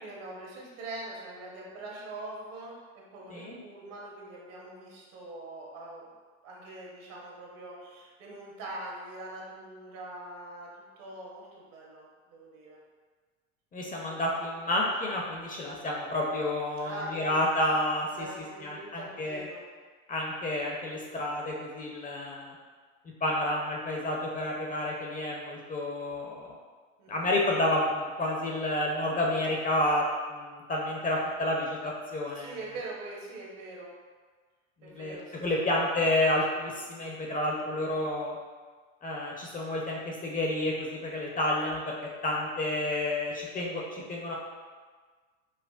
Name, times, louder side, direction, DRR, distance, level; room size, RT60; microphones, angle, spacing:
voice 1, 0.0-6.1 6.4-10.7 11.0-12.8 16.8-17.4 18.1-19.7 27.0-27.3 32.3-33.9 34.8-35.7, right 2 dB, 70° right, -3 dB, 1.2 m, -43 dB
voice 2, 13.7-18.3 18.6-19.4 20.1-22.5 23.2-26.5 27.1-30.0 30.3-32.5 34.8-38.4 39.0-41.9 42.2-44.3, left 1 dB, 20° left, -2 dB, 0.5 m, -30 dB
4.9 x 2.2 x 2.3 m, 1.5 s
hypercardioid pair, 90°, 40 cm